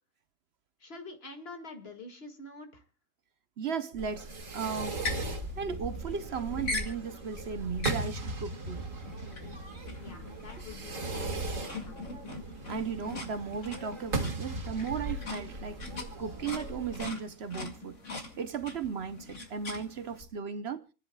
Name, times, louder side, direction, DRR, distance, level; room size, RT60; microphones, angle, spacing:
voice 1, 0.8-2.8 10.0-12.0, left 3 dB, 50° left, 2.2 m, -47 dB
voice 2, 3.6-5.0 5.6-8.8 12.7-15.8 16.2-18.0 18.4-20.9, right 6 dB, 60° right, 1.0 m, -36 dB
Fireworks, 4.0-17.0, right 2 dB, 90° right, 2.3 m, -38 dB
sound 1, 4.4-20.2, left 2 dB, 70° left, 2.6 m, -42 dB
29.0 x 10.0 x 2.3 m
omnidirectional pair, 1.3 m